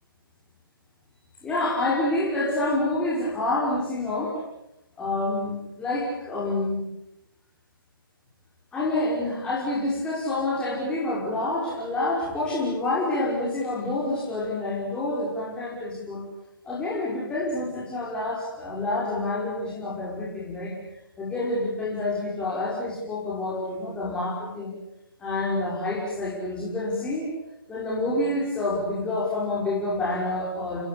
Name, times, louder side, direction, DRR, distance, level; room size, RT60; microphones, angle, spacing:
voice 1, 1.4-4.4 5.0-6.8 8.7-16.2 16.6-20.7 21.2-24.7 25.2-27.3 27.7-30.8, left 2 dB, 10° left, -7 dB, 5.8 m, -28 dB
28.5 x 21.0 x 8.7 m, 0.88 s
figure-of-eight pair, 150°, 12 cm